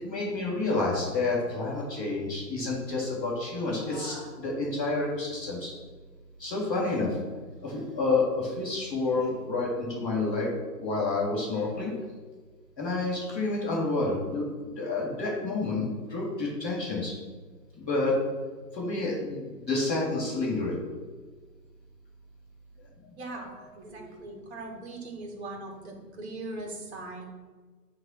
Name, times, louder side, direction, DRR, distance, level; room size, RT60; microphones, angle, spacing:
voice 1, 0.0-5.7 6.4-7.1 7.6-10.5 10.8-11.9 12.8-14.4 14.8-17.1 17.8-18.2 18.7-20.7 23.3-23.5 24.1-24.2, left 3 dB, ahead, -18 dB, 0.7 m, -29 dB
voice 2, 23.2-27.3, right 2 dB, 40° right, 0 dB, 2.3 m, -40 dB
9.3 x 3.8 x 6.1 m, 1.4 s
hypercardioid pair, 155°, 49 cm